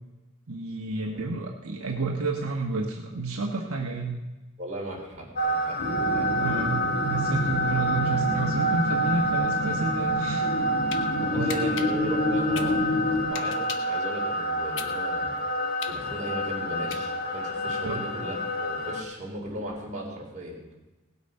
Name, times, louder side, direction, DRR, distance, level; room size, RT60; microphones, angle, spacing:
voice 1, 0.5-4.2 6.3-10.5 11.3-11.5 17.8-18.0, right 3 dB, 70° right, 0 dB, 1.3 m, -30 dB
voice 2, 4.6-6.4 11.1-12.8 13.2-15.3 15.9-20.6, right 1 dB, 35° right, -3 dB, 4.2 m, -37 dB
sound 1, 5.4-19.0, equal, 45° left, 1.2 m, -28 dB
sound 2, 5.8-13.2, left 1 dB, 80° left, 2.9 m, -29 dB
sound 3, 10.9-11.0 11.5-14.0 14.4-17.4, left 7 dB, 60° left, 1.1 m, -38 dB
18.5 x 8.2 x 5.5 m, 1.1 s
head